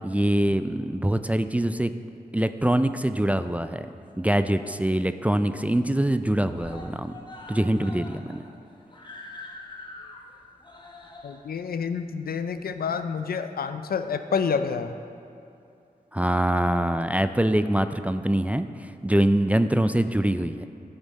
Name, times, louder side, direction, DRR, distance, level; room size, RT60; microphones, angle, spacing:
voice 1, 0.0-1.9 2.3-3.9 4.2-7.1 7.5-8.4 16.1-20.7, right 1 dB, 10° right, 10 dB, 0.3 m, -24 dB
Screaming, 3.7-4.5 4.9-5.0 5.3-5.4 5.7-6.2 6.5-13.3 14.2-14.3, left 2 dB, 30° left, 1.0 m, -45 dB
voice 2, 11.2-15.0, left 6 dB, 75° left, 10 dB, 0.4 m, -28 dB
11.0 x 5.4 x 4.1 m, 2.7 s
cardioid pair, 50°, 16 cm